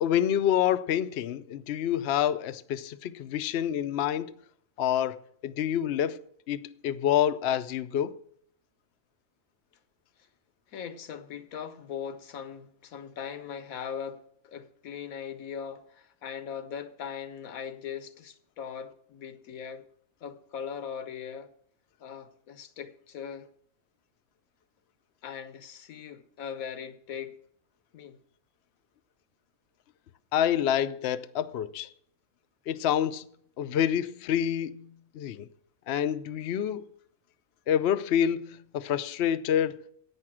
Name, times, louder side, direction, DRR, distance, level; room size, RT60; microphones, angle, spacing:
voice 1, 0.0-4.3 4.8-6.2 6.5-8.1 30.3-31.9 32.7-33.2 33.6-35.5 35.9-36.9 37.7-39.9, left 10 dB, 60° left, 0.7 m, -27 dB
voice 2, 10.7-19.9 20.2-21.5 22.0-23.5 25.2-27.4 27.9-28.2, left 7 dB, 75° left, 1.3 m, -40 dB
10.5 x 8.6 x 6.1 m
omnidirectional pair, 1.5 m